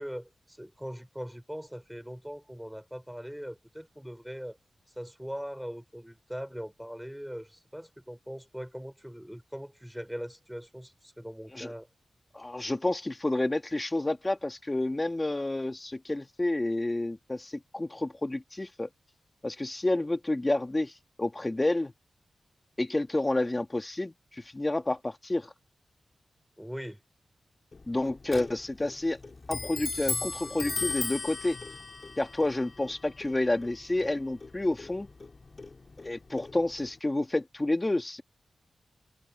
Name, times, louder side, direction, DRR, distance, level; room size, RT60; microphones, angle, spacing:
voice 1, 0.0-4.6 5.0-11.9 26.6-27.0, equal, 5° right, 4.8 m, -41 dB
voice 2, 12.3-18.9 19.4-20.9 21.2-21.9 22.8-25.5 27.9-29.2 29.5-31.6 32.2-35.1 36.0-38.2, left 2 dB, 20° left, 1.9 m, -29 dB
Clock, 27.7-37.0, left 3 dB, 40° left, 2.2 m, -38 dB
wide cardioid pair, 100°, 0 cm